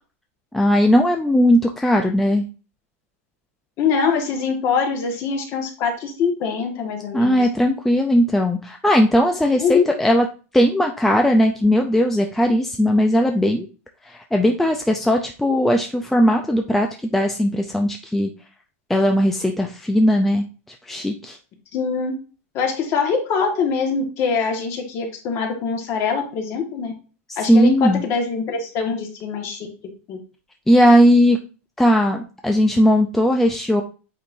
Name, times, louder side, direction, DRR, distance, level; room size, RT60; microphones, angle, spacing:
voice 1, 0.5-2.5 7.1-10.3 10.5-13.7 14.0-18.3 18.9-20.4 20.8-21.4 27.3-28.0 30.7-31.4 31.8-33.8, equal, 5° left, 3 dB, 0.4 m, -18 dB
voice 2, 3.8-7.4 9.6-9.9 21.7-22.1 22.5-26.9 27.4-29.7 30.1-30.2, left 5 dB, 35° left, 3 dB, 1.5 m, -23 dB
8.3 x 4.4 x 2.6 m, 0.35 s
supercardioid pair, 155°, 8 cm